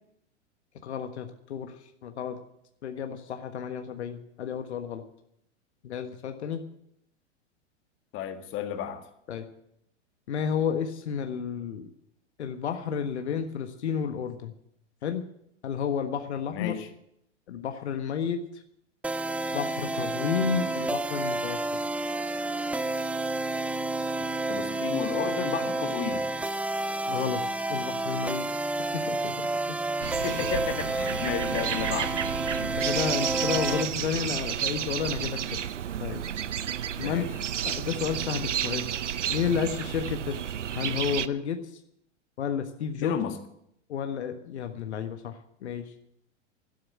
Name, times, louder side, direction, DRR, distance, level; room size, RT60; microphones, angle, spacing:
voice 1, 0.8-1.7 2.0-2.4 2.8-5.0 5.8-6.6 9.3-9.5 10.3-11.9 12.4-14.5 15.0-15.2 15.6-16.7 17.5-18.4 19.5-21.6 27.1-27.4 27.7-28.4 28.9-29.5 32.8-35.4 36.0-36.2 37.0-37.3 37.6-38.8 39.3-40.4 40.8-41.6 42.4-43.2 43.9-45.9, left 7 dB, 65° left, 6 dB, 1.6 m, -31 dB
voice 2, 8.1-9.0 16.5-16.9 24.5-26.3 30.2-32.2 37.0-37.3 43.0-43.4, left 9 dB, 35° left, 7 dB, 1.9 m, -32 dB
sound 1, 19.0-33.9, right 2 dB, 5° right, 0.5 m, -30 dB
sound 2, 30.0-41.3, right 9 dB, 80° right, 0.7 m, -31 dB
12.5 x 12.0 x 8.4 m, 0.75 s
figure-of-eight pair, 105°, 36 cm